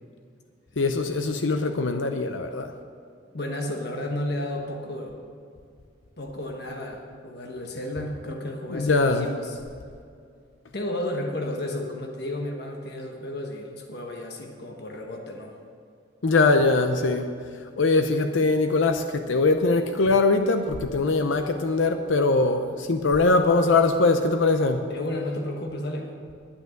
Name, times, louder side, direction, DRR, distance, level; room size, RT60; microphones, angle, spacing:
voice 1, 0.8-2.7 8.7-9.3 16.2-17.3 17.8-24.9, left 3 dB, 85° left, 7 dB, 0.7 m, -22 dB
voice 2, 3.3-5.2 6.2-9.6 10.7-15.5 24.8-26.1, left 1 dB, 60° left, 2 dB, 1.3 m, -32 dB
11.5 x 9.4 x 6.5 m, 2.3 s
head